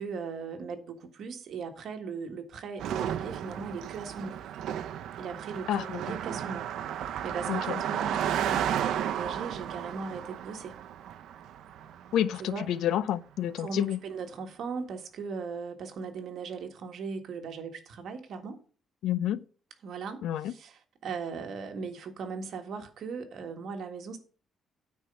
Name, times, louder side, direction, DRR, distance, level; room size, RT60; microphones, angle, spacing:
voice 1, 0.0-4.4 5.1-10.7 12.4-12.7 13.6-18.6 19.8-24.2, right 5 dB, 55° right, 1.6 m, -38 dB
Car passing by, 2.8-12.4, right 10 dB, 75° right, 0.7 m, -33 dB
voice 2, 5.7-6.0 7.5-7.8 12.1-14.0 19.0-19.4 20.2-20.5, left 11 dB, 85° left, 0.5 m, -29 dB
9.3 x 4.5 x 6.9 m
cardioid pair, 165°, 0 cm